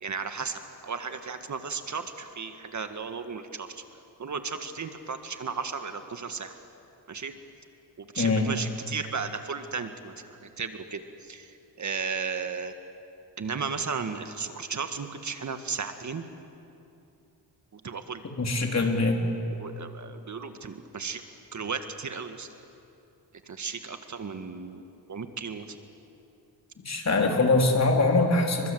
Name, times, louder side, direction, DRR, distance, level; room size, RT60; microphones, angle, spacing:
voice 1, 0.0-3.8 4.2-6.5 7.1-7.3 8.0-10.1 10.4-12.7 13.4-16.2 17.7-18.2 19.6-21.2 21.5-22.5 23.5-24.8 25.1-25.8, right 5 dB, 45° right, 7 dB, 1.7 m, -35 dB
voice 2, 8.2-8.5 18.4-19.2 26.9-28.7, left 3 dB, 40° left, 2 dB, 4.0 m, -23 dB
29.5 x 24.0 x 8.0 m, 2.8 s
cardioid pair, 95°, 40 cm